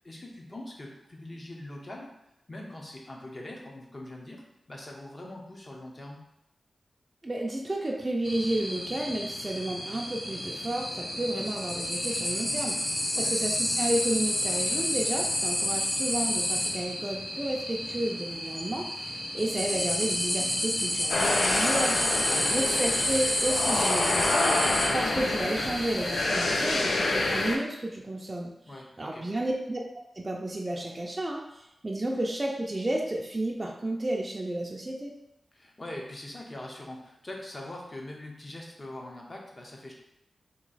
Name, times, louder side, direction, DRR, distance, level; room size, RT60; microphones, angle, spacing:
voice 1, 0.0-2.1 2.5-6.2 13.1-13.3 22.2-22.6 28.7-28.9 29.1-29.3 35.5-39.9, left 1 dB, 35° left, -1 dB, 0.9 m, -42 dB
voice 2, 7.2-22.2 22.5-24.5 24.9-28.5 29.0-29.8 30.1-35.1, right 1 dB, 25° right, -1 dB, 0.5 m, -32 dB
sound 1, 8.2-27.5, left 1 dB, 60° left, 1.2 m, -30 dB
sound 2, 21.1-27.6, left 2 dB, 80° left, 0.5 m, -28 dB
3.0 x 2.7 x 4.0 m, 0.82 s
cardioid pair, 70°, 0 cm